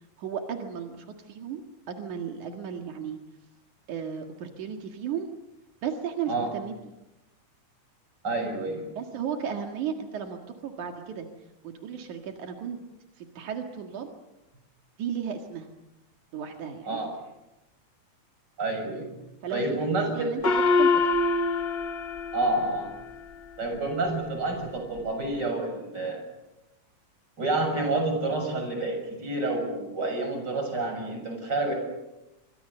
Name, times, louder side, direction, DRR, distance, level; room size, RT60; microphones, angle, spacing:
voice 1, 0.2-3.2 3.9-5.3 5.8-6.7 9.0-11.3 11.6-12.8 13.2-14.1 15.0-15.7 16.3-17.0 19.4-20.4 20.7-20.9, right 7 dB, 85° right, 4 dB, 3.3 m, -34 dB
voice 2, 8.2-8.9 16.8-17.1 18.6-19.1 19.5-20.3 22.3-22.9 23.6-26.2 27.4-31.8, right 2 dB, 35° right, 4 dB, 7.5 m, -28 dB
Gong, 20.4-23.3, left 3 dB, 55° left, 0.6 m, -25 dB
27.5 x 24.0 x 6.9 m, 0.95 s
omnidirectional pair, 3.4 m